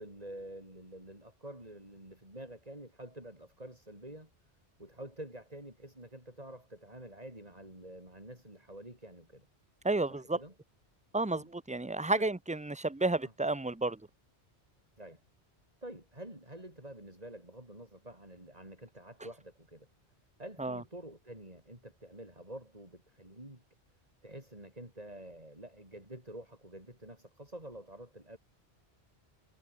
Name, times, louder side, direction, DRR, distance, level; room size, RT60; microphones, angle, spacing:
voice 1, 0.0-4.3 4.8-9.5 10.1-10.5 11.3-11.5 12.1-12.3 13.2-13.3 15.0-15.2 15.8-19.9 20.4-23.6 24.2-28.4, right 1 dB, 35° right, 6.4 m, -48 dB
voice 2, 9.8-10.4 11.1-14.0 20.6-20.8, right 2 dB, 10° right, 0.5 m, -31 dB
omnidirectional pair, 1.1 m